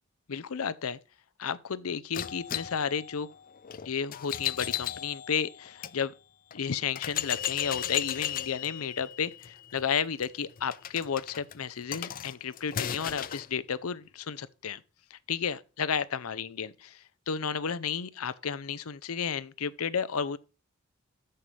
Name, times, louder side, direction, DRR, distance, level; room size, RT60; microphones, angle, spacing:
voice 1, 0.3-1.0 1.4-3.3 3.8-6.1 6.5-14.8 15.1-20.4, left 7 dB, 85° left, 0.6 m, -32 dB
sound 1, 2.1-5.9 6.5-6.6 7.0-13.5, left 10 dB, 40° left, 0.4 m, -36 dB
13.5 x 5.6 x 3.3 m
head